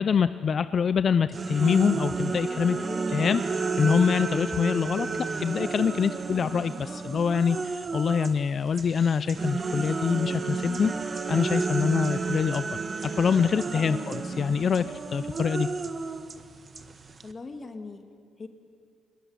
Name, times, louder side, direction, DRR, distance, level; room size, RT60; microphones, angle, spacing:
voice 1, 0.0-2.8 3.1-5.1 5.4-12.6 13.2-14.8 15.1-15.7, left 6 dB, 50° left, 13 dB, 0.6 m, -25 dB
sound 1, 1.3-8.4 8.7-17.3, right 4 dB, 35° right, 1.5 m, -32 dB
voice 2, 2.7-3.1 13.7-14.1 17.2-18.0 18.4-18.5, left 3 dB, 35° left, 6 dB, 2.6 m, -40 dB
22.5 x 20.5 x 9.9 m, 2.3 s
cardioid pair, 90°, 0 cm